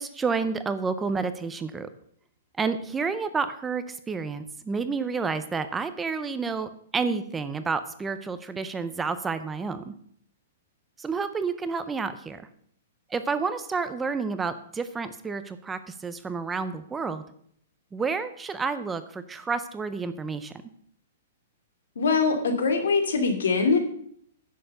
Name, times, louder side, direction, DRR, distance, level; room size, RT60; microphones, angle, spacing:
voice 1, 0.0-1.9 2.6-9.9 11.0-12.4 13.1-17.2 17.9-20.5, right 4 dB, 10° right, 11 dB, 0.4 m, -30 dB
voice 2, 22.0-23.8, left 4 dB, 85° left, 5 dB, 2.5 m, -23 dB
10.0 x 6.6 x 6.6 m, 0.65 s
hypercardioid pair, 175°, 0 cm